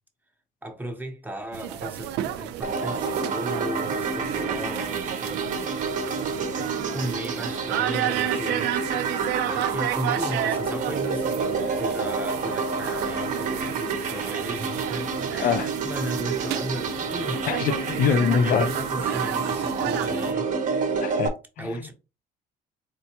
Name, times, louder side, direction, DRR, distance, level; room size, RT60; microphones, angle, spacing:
voice 1, 0.6-5.4 6.5-8.7 9.2-17.6 18.1-20.5 21.6-21.9, right 1 dB, 10° right, 0.8 m, -35 dB
sound 1, 1.5-20.3, right 12 dB, 80° right, 0.4 m, -33 dB
sound 2, 2.6-21.3, right 4 dB, 50° right, 0.8 m, -29 dB
voice 2, 17.5-18.7 21.0-21.7, left 7 dB, 55° left, 0.4 m, -24 dB
4.3 x 2.2 x 2.8 m
cardioid pair, 110°, 17 cm